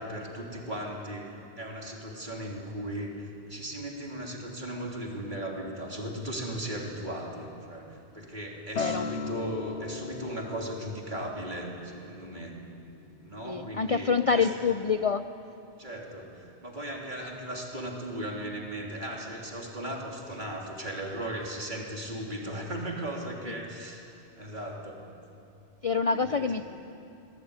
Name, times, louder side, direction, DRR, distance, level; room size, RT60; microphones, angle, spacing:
voice 1, 0.0-12.6 13.2-14.5 15.8-24.0 24.4-25.1 26.1-26.5, right 1 dB, 45° right, -1 dB, 3.5 m, -37 dB
Acoustic guitar, 8.8-14.0, left 5 dB, 90° left, 1.1 m, -38 dB
voice 2, 13.4-15.2 25.8-26.6, left 5 dB, 40° left, 9 dB, 0.6 m, -26 dB
24.0 x 19.5 x 9.7 m, 2.6 s
omnidirectional pair, 1.1 m